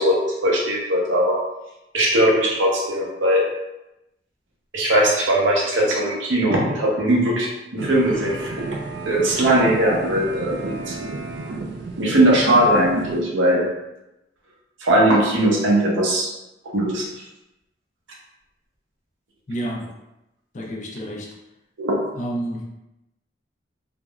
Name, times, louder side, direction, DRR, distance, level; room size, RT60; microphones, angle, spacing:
voice 1, 0.0-1.4 1.9-3.5 4.7-8.6 9.1-11.0 12.0-13.7 14.8-16.3 16.7-17.1 21.8-22.0, right 1 dB, 80° right, -2 dB, 0.7 m, -19 dB
sound 1, 7.8-13.2, right 3 dB, 60° right, 0.3 m, -31 dB
voice 2, 19.5-19.8 20.5-21.3 22.2-22.6, right 1 dB, 40° left, -1 dB, 0.4 m, -29 dB
3.4 x 2.0 x 2.3 m, 0.91 s
head